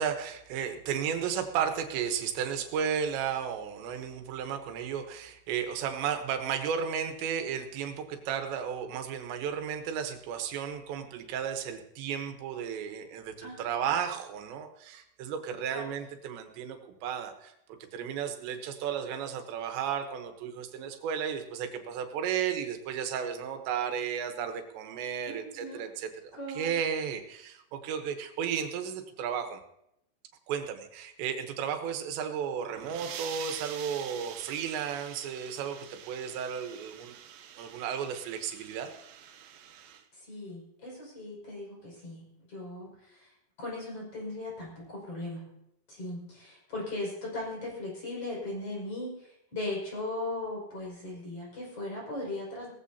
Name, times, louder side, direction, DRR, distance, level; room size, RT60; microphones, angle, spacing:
voice 1, 0.0-17.5 17.9-29.6 30.5-37.1 37.6-38.9, right 8 dB, 90° right, 6 dB, 3.4 m, -34 dB
voice 2, 13.4-13.9 15.7-15.8 25.3-25.9 26.3-26.8 40.1-43.3 43.6-45.4 45.9-52.7, left 2 dB, 35° left, -3 dB, 6.6 m, -38 dB
sound 1, 32.6-40.0, right 9 dB, 75° right, 2.3 m, -46 dB
19.0 x 15.0 x 2.8 m, 0.79 s
omnidirectional pair, 4.9 m